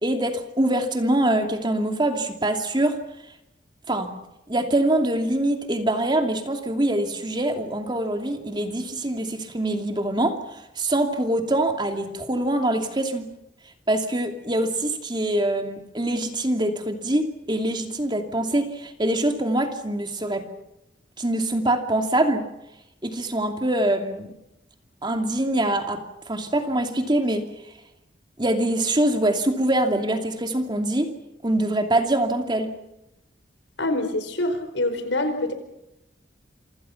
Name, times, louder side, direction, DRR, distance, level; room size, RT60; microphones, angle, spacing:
voice 1, 0.0-3.0 3.9-4.1 4.5-13.2 13.9-20.4 21.2-22.4 23.0-24.3 25.0-27.4 28.4-31.1 31.4-32.7, right 1 dB, 25° right, 5 dB, 2.6 m, -24 dB
voice 2, 33.8-35.5, left 2 dB, 85° left, 8 dB, 4.7 m, -25 dB
27.5 x 26.0 x 5.9 m, 0.88 s
head